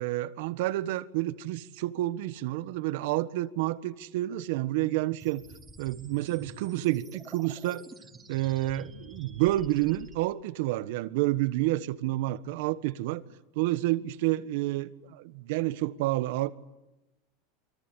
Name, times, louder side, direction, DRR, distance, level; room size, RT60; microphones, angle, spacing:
voice 1, 0.0-5.4 5.8-7.8 8.3-13.2 13.5-16.5, right 16 dB, 70° right, 1.4 m, -29 dB
sound 1, 5.2-10.2, right 3 dB, 15° right, 3.0 m, -50 dB
29.5 x 24.0 x 8.4 m
supercardioid pair, 130°, 0 cm